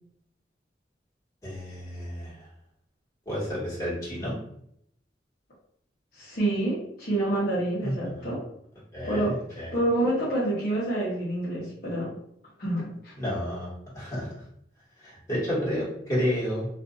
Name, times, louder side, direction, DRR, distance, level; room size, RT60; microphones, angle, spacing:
voice 1, 1.4-2.5 3.2-4.4 7.8-8.3 8.9-9.8 13.2-13.7 13.9-14.3 15.0-16.7, equal, 20° left, -10 dB, 1.4 m, -31 dB
voice 2, 6.1-8.4 9.0-9.3 9.7-12.1 12.6-13.1, right 1 dB, 55° left, -8 dB, 0.9 m, -27 dB
2.5 x 2.5 x 2.5 m, 0.70 s
head